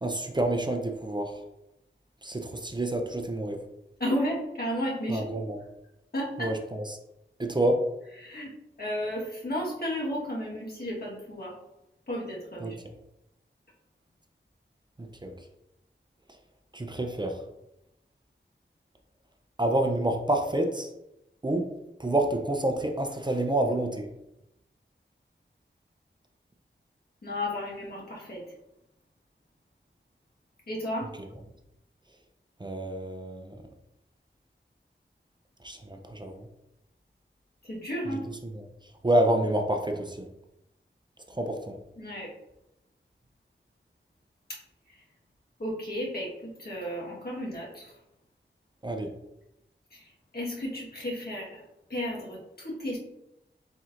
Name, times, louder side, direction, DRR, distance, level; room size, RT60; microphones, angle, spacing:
voice 1, 0.0-1.4 2.2-3.6 5.1-5.6 6.4-6.8 7.4-7.8 12.6-12.7 15.0-15.3 16.7-17.4 19.6-20.9 21.4-21.7 22.0-24.1 31.2-31.3 32.6-33.5 35.6-36.5 38.1-38.7 39.0-40.3 41.3-41.8 48.8-49.1, right 1 dB, 25° right, 4 dB, 0.5 m, -28 dB
voice 2, 4.0-5.4 6.1-6.5 8.2-8.5 8.8-11.5 12.1-12.7 27.2-28.4 30.7-31.1 37.6-38.2 42.0-42.3 44.5-44.6 44.9-45.0 45.6-47.9 49.9-51.6 51.9-53.0, equal, 50° left, -4 dB, 1.4 m, -33 dB
4.4 x 4.1 x 2.5 m, 0.87 s
wide cardioid pair, 65°, 20 cm